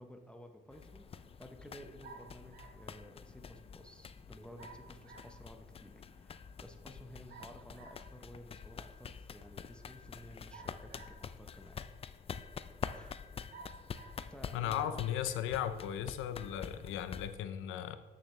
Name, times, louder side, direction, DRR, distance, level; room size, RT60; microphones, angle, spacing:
voice 1, 0.0-11.8 12.9-13.4 14.3-15.4, equal, 5° left, 5 dB, 0.7 m, -54 dB
sound 1, 0.7-17.4, left 6 dB, 30° left, 0.3 m, -47 dB
sound 2, 2.0-2.9 4.6-5.4 7.3-8.1 10.5-11.3 12.1-12.2 13.5-14.2, right 4 dB, 50° right, 1.7 m, -54 dB
voice 2, 14.5-18.0, left 10 dB, 90° left, 11 dB, 0.6 m, -36 dB
8.6 x 6.6 x 3.2 m, 1.4 s
cardioid pair, 90°, 20 cm